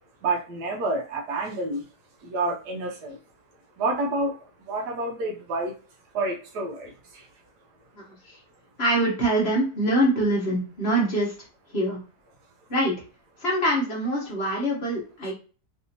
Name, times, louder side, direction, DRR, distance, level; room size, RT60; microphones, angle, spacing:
voice 1, 0.2-1.8 2.2-3.2 3.8-4.4 4.7-5.7 6.1-6.9, right 2 dB, 75° right, 2 dB, 1.2 m, -28 dB
voice 2, 8.8-11.3 11.7-12.0 12.7-12.9 13.4-15.3, right 1 dB, 40° left, -3 dB, 1.2 m, -24 dB
3.3 x 2.7 x 2.7 m, 0.36 s
omnidirectional pair, 1.8 m